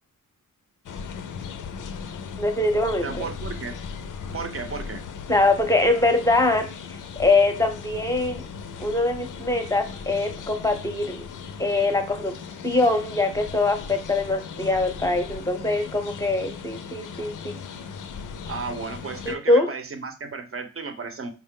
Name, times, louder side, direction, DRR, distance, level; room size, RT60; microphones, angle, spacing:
sound 1, 0.9-19.4, left 6 dB, 65° left, 0.5 m, -38 dB
voice 1, 2.4-3.3 5.3-8.4 8.8-11.2 11.6-12.3 12.6-17.6 19.3-19.7, left 2 dB, 10° left, 5 dB, 0.7 m, -23 dB
voice 2, 3.0-3.8 4.3-5.0 18.5-21.3, right 4 dB, 40° right, 7 dB, 0.7 m, -34 dB
4.8 x 2.1 x 3.6 m, 0.34 s
wide cardioid pair, 90°, 33 cm